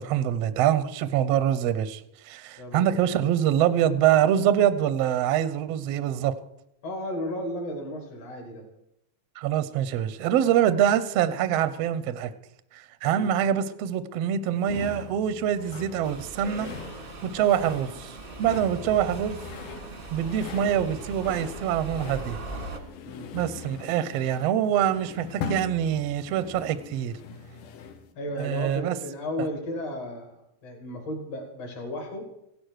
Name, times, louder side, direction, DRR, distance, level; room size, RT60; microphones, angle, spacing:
voice 1, 0.0-6.3 9.4-12.3 12.7-16.7 17.2-19.4 20.1-22.4 23.3-27.2 28.4-28.9, right 10 dB, 75° right, 1.5 m, -25 dB
voice 2, 2.6-3.0 6.8-8.7 13.1-13.3 18.8-19.0 23.0-23.3 28.2-32.3, left 1 dB, 55° left, 3.7 m, -34 dB
sound 1, 14.6-28.1, left 6 dB, 85° left, 2.8 m, -41 dB
Subway metro underground, 16.0-22.8, right 2 dB, 30° right, 1.0 m, -40 dB
16.0 x 11.5 x 6.4 m
omnidirectional pair, 3.6 m